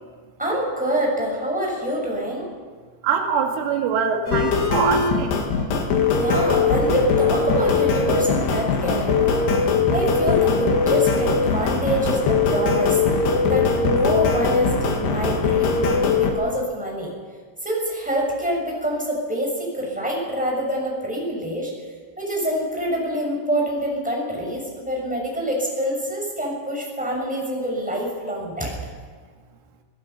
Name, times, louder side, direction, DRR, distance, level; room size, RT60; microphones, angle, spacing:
voice 1, 0.4-2.4 6.1-9.4 9.9-13.0 13.5-17.1 17.6-21.7 22.2-28.7, equal, ahead, -2 dB, 6.4 m, -26 dB
voice 2, 3.0-5.4, right 6 dB, 90° right, 3 dB, 4.3 m, -23 dB
sound 1, 4.3-16.3, left 4 dB, 65° left, 3.9 m, -20 dB
28.0 x 18.0 x 5.9 m, 1.5 s
omnidirectional pair, 5.4 m